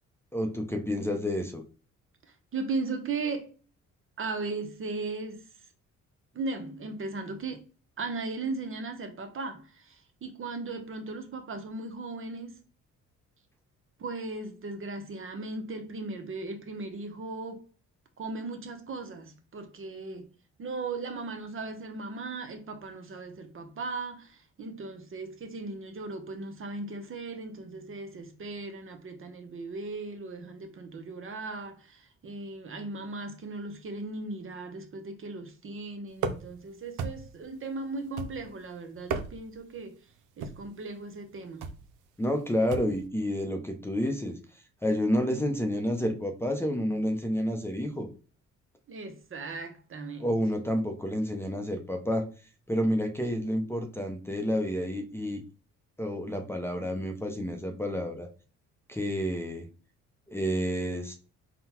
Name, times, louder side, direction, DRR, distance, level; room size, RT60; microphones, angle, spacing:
voice 1, 0.3-1.6 42.2-44.4 44.8-48.1 50.2-52.2 52.7-55.4 56.0-58.3 58.9-59.7 60.3-61.1, equal, 10° left, 0.7 m, -29 dB
voice 2, 2.3-3.5 4.2-5.5 6.3-7.7 8.0-12.6 14.0-17.7 18.2-20.3 20.6-40.0 40.4-41.7 48.9-50.3, right 3 dB, 45° right, 0.8 m, -37 dB
sound 1, 36.2-36.6 37.0-37.4 38.2-38.6 39.0-39.6 40.4-40.7 41.6-41.9 42.7-43.0, right 5 dB, 90° right, 0.6 m, -35 dB
3.9 x 2.2 x 4.3 m
cardioid pair, 90°, 30 cm